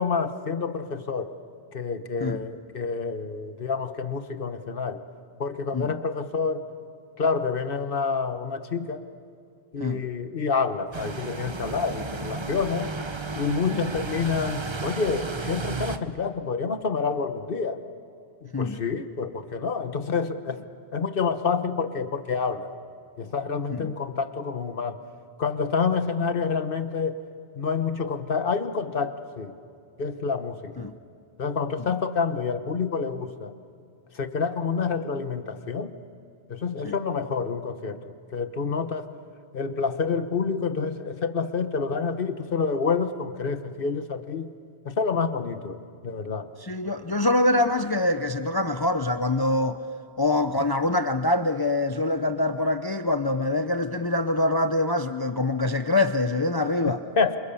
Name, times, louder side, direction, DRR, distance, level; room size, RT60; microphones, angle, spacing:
voice 1, 0.0-1.3 1.7-5.0 5.4-6.7 7.2-9.0 9.7-12.9 13.4-17.8 18.4-20.7 20.9-22.7 23.2-25.0 25.4-27.2 27.6-29.5 30.0-30.9 31.4-33.5 34.1-35.9 36.5-38.0 38.3-39.1 39.5-44.5 44.8-45.8 46.0-46.5 56.8-57.4, left 5 dB, 60° left, 1.3 m, -28 dB
sound 1, 10.9-16.0, right 4 dB, 30° right, 0.9 m, -33 dB
voice 2, 18.5-18.8 23.7-23.9 30.8-31.0 31.8-31.9 36.8-36.9 46.6-49.8 50.2-57.0, left 2 dB, 25° left, 0.7 m, -25 dB
28.0 x 27.0 x 7.0 m
omnidirectional pair, 1.0 m